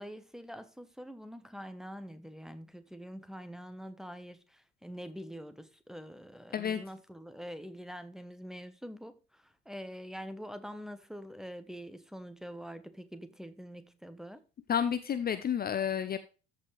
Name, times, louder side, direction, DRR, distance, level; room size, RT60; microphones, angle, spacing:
voice 1, 0.0-14.4, equal, ahead, 1.1 m, -45 dB
voice 2, 14.7-16.2, left 8 dB, 30° left, 0.7 m, -30 dB
13.5 x 4.9 x 3.3 m
figure-of-eight pair, 55°, 32 cm